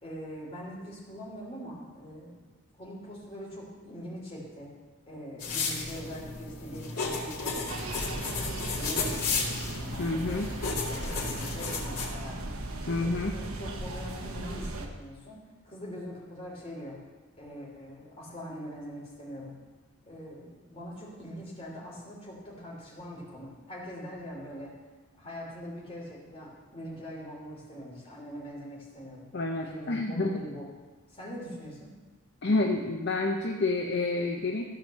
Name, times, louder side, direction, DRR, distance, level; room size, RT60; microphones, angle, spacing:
voice 1, 0.0-2.4 2.8-4.7 5.1-10.6 10.9-12.5 12.8-15.4 15.6-17.0 17.4-19.6 20.0-24.7 25.2-29.3 29.6-30.7 31.1-31.9, equal, 25° left, -5 dB, 3.1 m, -43 dB
sound 1, 5.4-12.1, left 4 dB, 90° left, 2.2 m, -33 dB
sound 2, 7.7-14.9, right 1 dB, 75° right, 1.0 m, -37 dB
voice 2, 10.0-10.5 12.9-13.4 29.3-30.4 32.4-34.7, left 2 dB, 50° left, 1 dB, 0.7 m, -29 dB
14.5 x 5.0 x 6.5 m, 1.3 s
head